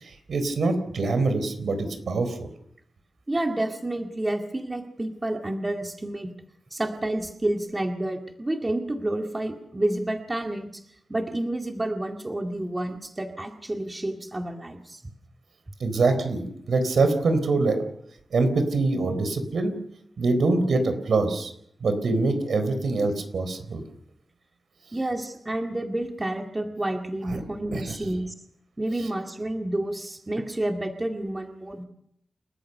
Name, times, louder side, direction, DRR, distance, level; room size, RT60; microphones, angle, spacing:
voice 1, 0.0-2.5 15.8-17.8 18.3-19.8 20.2-21.5 21.8-23.8 27.3-27.4 27.7-27.8, right 3 dB, 75° right, 9 dB, 4.0 m, -24 dB
voice 2, 3.3-6.3 6.7-10.8 11.1-15.0 24.9-28.3 28.8-31.8, right 1 dB, 20° right, 3 dB, 2.1 m, -29 dB
29.5 x 14.0 x 6.7 m, 0.73 s
wide cardioid pair, 105°, 0 cm